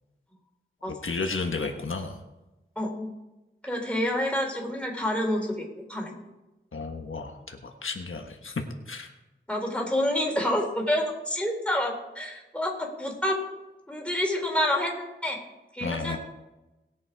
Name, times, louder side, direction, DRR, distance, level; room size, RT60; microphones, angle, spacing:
voice 1, 1.0-2.2 6.7-9.1 15.8-16.2, left 4 dB, 90° left, 3 dB, 1.3 m, -33 dB
voice 2, 2.8-3.1 3.6-5.6 5.9-6.2 9.5-13.4 13.9-15.4 15.7-16.2, left 1 dB, 5° left, 0 dB, 3.5 m, -28 dB
19.5 x 7.4 x 4.7 m, 1.0 s
wide cardioid pair, 70°, 20 cm